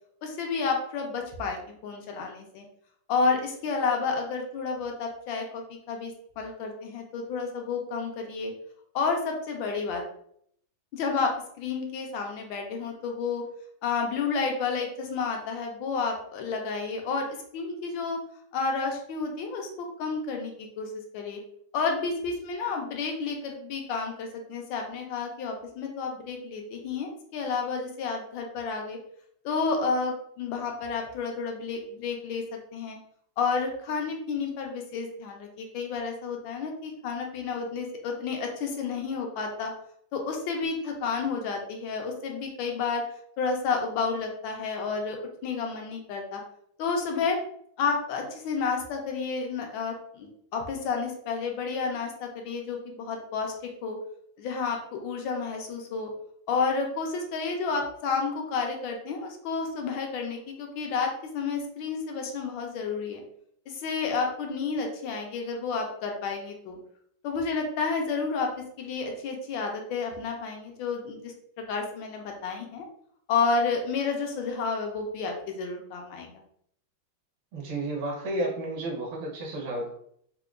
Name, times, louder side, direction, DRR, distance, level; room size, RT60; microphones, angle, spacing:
voice 1, 0.2-2.6 3.1-8.5 8.9-10.0 10.9-13.5 13.8-17.3 17.5-18.2 18.5-21.4 21.7-29.0 29.4-32.4 32.7-33.0 33.4-39.7 40.1-43.0 43.4-45.2 45.4-46.4 46.8-47.4 47.8-54.0 54.4-56.1 56.5-63.2 63.7-66.8 67.2-68.5 68.8-71.3 71.7-72.9 73.3-76.3, left 4 dB, 80° left, 2 dB, 1.3 m, -30 dB
voice 2, 77.5-79.9, right 1 dB, 80° right, 0 dB, 1.6 m, -32 dB
4.6 x 2.1 x 2.4 m, 0.67 s
omnidirectional pair, 2.2 m